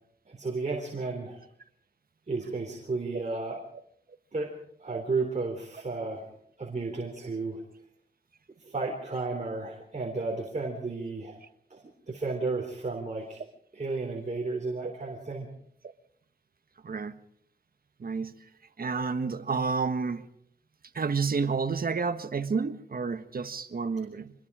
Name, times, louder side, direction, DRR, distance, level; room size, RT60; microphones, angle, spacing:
voice 1, 0.3-1.4 2.3-3.6 4.3-4.5 4.8-6.3 6.6-7.6 8.6-11.4 11.7-11.8 12.1-13.4 13.7-15.5, right 3 dB, 40° right, 3.8 m, -33 dB
voice 2, 16.8-17.1 18.0-18.3 18.8-20.2 20.9-24.3, right 5 dB, 55° right, 1.5 m, -30 dB
25.5 x 21.0 x 5.0 m
wide cardioid pair, 95°, 18 cm